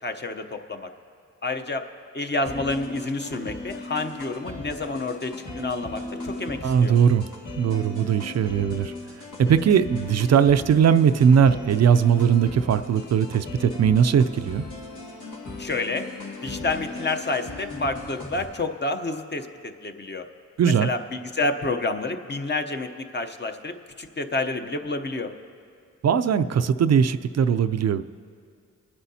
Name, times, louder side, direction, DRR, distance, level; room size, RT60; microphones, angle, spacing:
voice 1, 0.0-0.9 1.4-1.8 2.1-6.9 15.6-16.1 16.4-20.3 20.8-25.3, left 2 dB, 35° left, 6 dB, 0.8 m, -29 dB
sound 1, 2.5-18.5, left 2 dB, 85° left, 2.2 m, -37 dB
voice 2, 6.6-7.3 7.6-8.9 9.4-14.6 20.6-20.9 26.0-28.0, right 7 dB, 60° right, 11 dB, 0.4 m, -19 dB
22.5 x 9.8 x 2.8 m, 2.2 s
cardioid pair, 65°, 30 cm